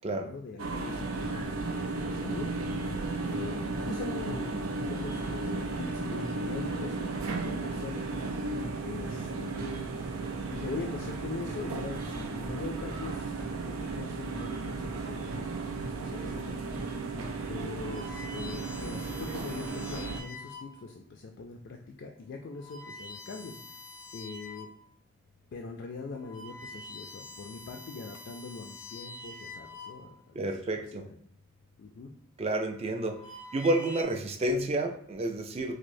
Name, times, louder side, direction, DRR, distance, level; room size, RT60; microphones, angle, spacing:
voice 1, 0.2-2.5 3.3-8.1 8.8-9.9 10.5-16.6 17.5-23.8 24.1-24.7 25.5-30.5 31.0-31.2 31.8-32.1, left 4 dB, 55° left, 2 dB, 0.3 m, -42 dB
sound 1, 0.6-20.2, right 3 dB, 90° right, 0.5 m, -35 dB
sound 2, 2.4-2.5 2.8-2.9 3.3-3.4 3.8-3.9 4.3-4.4 4.8-4.9 5.2-5.3 5.7-5.8 6.2-6.3 6.7-6.8 7.2-7.3 7.6-7.7 8.1-8.2 8.6-8.7 9.1-9.2 9.6-9.7 10.0-10.1 10.5-10.6 11.0-11.1 11.5-11.6 12.0-12.1 12.4-12.5 12.9-13.0 13.4-13.5 13.9-14.0 14.4-14.5 14.8-14.9 15.3-15.4 15.8-15.9 16.3-16.4 16.8-16.9 17.2-17.3, right 2 dB, 65° right, 0.9 m, -44 dB
sound 3, 17.6-21.0 21.6-21.9 22.4-24.9 25.3-25.4 26.0-30.4 31.4-31.8 32.7-34.0, left 2 dB, 85° left, 0.6 m, -46 dB
voice 2, 30.4-31.1 32.4-33.2 33.5-35.8, right 1 dB, 30° right, 4 dB, 0.4 m, -30 dB
4.8 x 2.0 x 2.6 m, 0.65 s
head